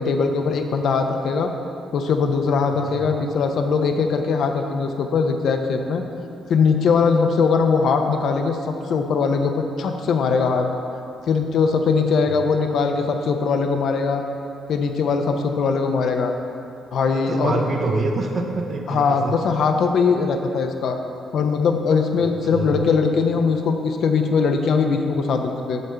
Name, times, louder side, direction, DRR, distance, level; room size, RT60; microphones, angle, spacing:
voice 1, 0.0-1.5 1.9-6.0 6.5-10.7 11.3-14.2 14.7-16.3 16.9-17.7 18.9-21.0 21.3-25.8, left 5 dB, 65° left, 5 dB, 0.6 m, -21 dB
voice 2, 17.1-19.3 22.5-22.8, right 3 dB, 50° right, 2 dB, 0.9 m, -26 dB
8.1 x 6.4 x 3.3 m, 2.6 s
hypercardioid pair, 45°, 0 cm